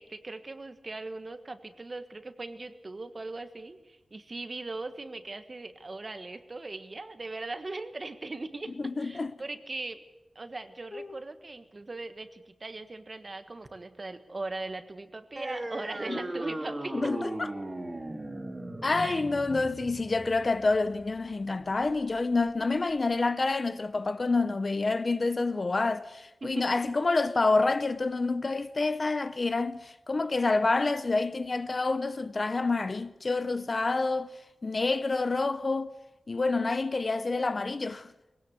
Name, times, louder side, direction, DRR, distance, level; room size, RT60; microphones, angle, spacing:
voice 1, 0.0-10.0 10.3-17.1 18.9-19.2 26.4-26.7, right 2 dB, 35° right, 1.5 m, -39 dB
voice 2, 8.8-9.3 10.9-11.2 16.1-16.2 16.9-17.5 18.8-34.3 34.6-35.9 36.3-38.1, left 3 dB, 40° left, 0.7 m, -28 dB
sound 1, 15.4-22.4, right 1 dB, 20° right, 2.7 m, -38 dB
21.5 x 17.0 x 8.5 m
wide cardioid pair, 120°, 0 cm